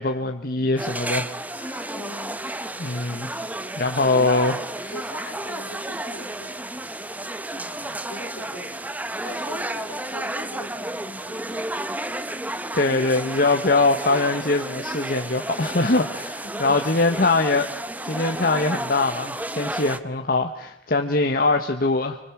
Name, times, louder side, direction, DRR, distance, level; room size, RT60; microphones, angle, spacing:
voice 1, 0.0-1.9 2.8-3.4 3.8-4.9 12.7-17.7 18.0-22.2, left 3 dB, 50° left, 4 dB, 1.3 m, -23 dB
sound 1, 0.8-20.0, right 1 dB, 10° right, 0.9 m, -32 dB
voice 2, 1.9-2.4 4.9-6.7 7.5-8.8 9.2-12.0 16.4-16.8, left 1 dB, 70° left, 6 dB, 3.7 m, -41 dB
26.5 x 25.0 x 7.2 m, 0.73 s
head